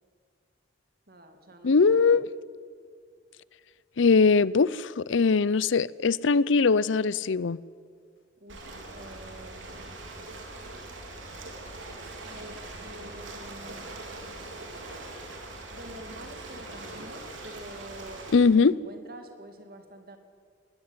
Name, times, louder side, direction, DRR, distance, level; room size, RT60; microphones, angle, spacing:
voice 1, 1.1-2.2 8.4-10.0 11.9-13.9 15.5-20.2, right 1 dB, 50° right, 2.5 m, -47 dB
voice 2, 1.6-2.3 4.0-7.6 18.3-18.7, left 4 dB, 85° left, 0.6 m, -21 dB
Ocean, 8.5-18.3, right 2 dB, 90° right, 4.0 m, -42 dB
20.5 x 19.0 x 9.8 m
head